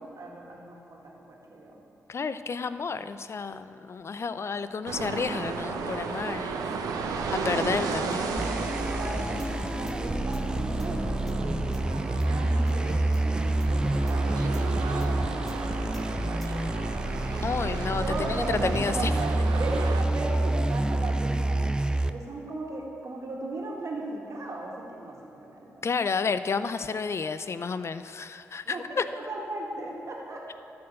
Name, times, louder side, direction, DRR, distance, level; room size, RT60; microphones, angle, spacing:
voice 1, 0.0-1.8 7.1-7.9 8.2-17.3 18.0-25.9 28.7-30.5, right 2 dB, 60° right, -2 dB, 1.9 m, -38 dB
voice 2, 2.1-6.5 7.4-8.3 17.4-19.1 25.8-29.0, left 5 dB, 45° left, 12 dB, 0.5 m, -31 dB
sound 1, 4.9-20.0, right 4 dB, 85° right, 0.7 m, -34 dB
sound 2, 8.4-22.1, right 1 dB, 15° right, 0.5 m, -28 dB
sound 3, 9.2-16.5, left 1 dB, 5° left, 1.2 m, -39 dB
12.0 x 4.4 x 7.6 m, 2.8 s
supercardioid pair, 45°, 6 cm